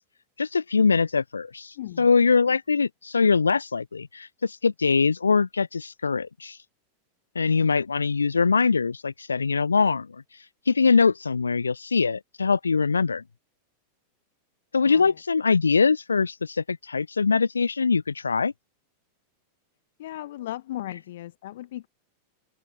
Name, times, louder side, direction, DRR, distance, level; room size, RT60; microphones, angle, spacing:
voice 1, 0.4-6.6 7.4-10.2 10.7-13.2 14.7-18.5, left 5 dB, 75° left, 0.3 m, -23 dB
voice 2, 1.7-2.1 14.8-15.2 20.0-21.9, left 14 dB, 55° left, 0.9 m, -36 dB
figure-of-eight pair, 90°, 0 cm